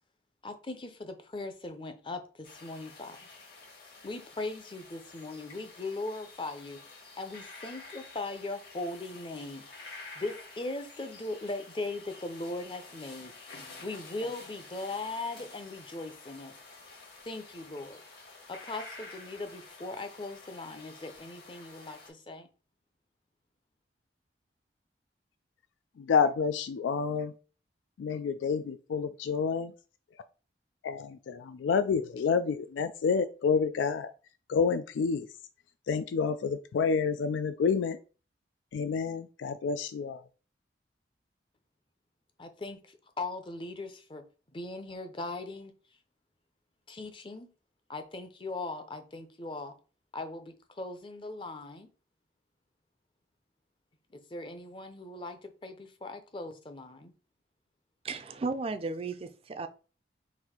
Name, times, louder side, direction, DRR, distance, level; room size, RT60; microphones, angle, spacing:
voice 1, 0.4-3.2 4.0-6.8 7.2-9.6 10.2-13.3 13.8-16.6 17.2-18.0 18.5-22.5 42.4-44.2 44.5-45.7 46.9-47.5 47.9-49.7 50.1-51.9 54.3-57.1, left 2 dB, 30° left, 8 dB, 0.6 m, -39 dB
sound 1, 2.4-22.1, left 3 dB, 60° left, 1.6 m, -50 dB
voice 2, 26.0-27.3 28.0-29.7 30.8-34.1 34.5-35.3 35.9-38.0 38.7-40.2, left 5 dB, 85° left, 11 dB, 0.3 m, -29 dB
voice 3, 58.0-59.7, right 3 dB, 30° right, 8 dB, 0.4 m, -34 dB
4.1 x 2.6 x 4.3 m, 0.35 s
head